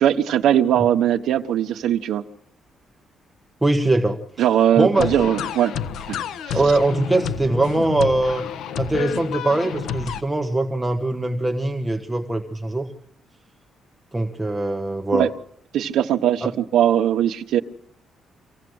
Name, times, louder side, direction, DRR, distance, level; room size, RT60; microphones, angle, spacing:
voice 1, 0.0-2.2 4.4-5.7 6.5-6.6 15.1-15.3 15.7-17.6, right 10 dB, 85° right, 3 dB, 1.2 m, -20 dB
voice 2, 3.6-4.5 4.8-5.3 6.5-8.5 8.8-12.9 14.1-15.3 16.4-16.5, right 2 dB, 10° right, 4 dB, 1.3 m, -22 dB
sound 1, 4.9-10.2, left 8 dB, 85° left, 1.3 m, -30 dB
25.5 x 16.5 x 7.9 m, 0.66 s
cardioid pair, 170°, 0 cm